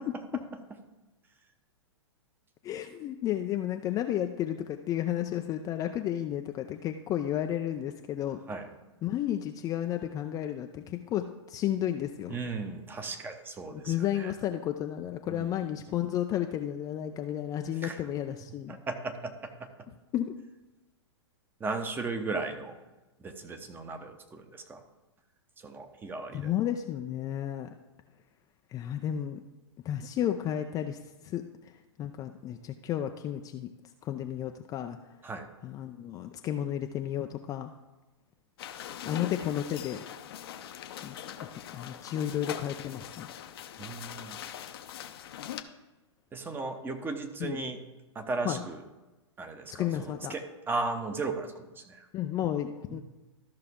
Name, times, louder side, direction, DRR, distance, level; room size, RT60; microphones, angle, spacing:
voice 1, 0.1-0.4 2.6-8.4 9.0-12.4 13.7-18.8 20.1-20.4 26.3-27.7 28.7-29.4 29.8-33.7 34.0-35.1 35.6-37.7 39.1-40.1 41.0-43.3 47.4-47.6 48.4-48.6 49.7-50.3 52.1-53.0, left 11 dB, 25° left, 6 dB, 0.4 m, -32 dB
voice 2, 12.3-14.3 15.3-15.6 17.8-18.0 18.7-19.7 21.6-22.8 23.2-24.8 25.6-26.5 35.2-35.5 39.0-39.2 43.8-44.4 46.3-47.8 48.1-48.8 49.4-52.1 52.9-53.0, right 3 dB, 15° right, 6 dB, 0.9 m, -36 dB
sound 1, 38.6-45.6, left 10 dB, 55° left, 0.7 m, -42 dB
13.0 x 5.7 x 3.6 m, 1.1 s
figure-of-eight pair, 110°, 15 cm